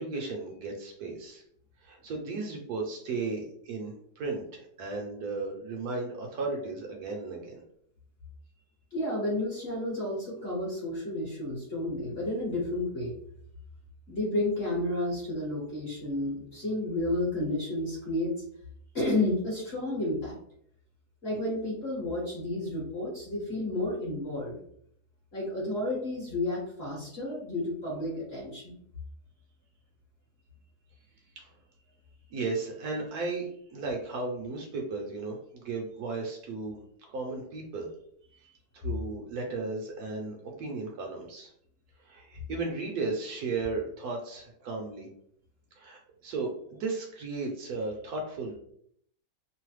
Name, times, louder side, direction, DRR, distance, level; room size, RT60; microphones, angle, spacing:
voice 1, 0.0-1.4 1.8-7.6 31.4-31.5 32.3-36.8 37.1-37.9 38.4-41.5 42.0-45.1 45.8-48.6, right 3 dB, 70° right, 1 dB, 1.0 m, -35 dB
voice 2, 8.9-13.1 14.1-18.3 18.9-20.4 21.2-24.5 25.3-28.8, left 1 dB, 45° left, -5 dB, 1.0 m, -31 dB
3.0 x 2.0 x 3.1 m, 0.67 s
omnidirectional pair, 1.9 m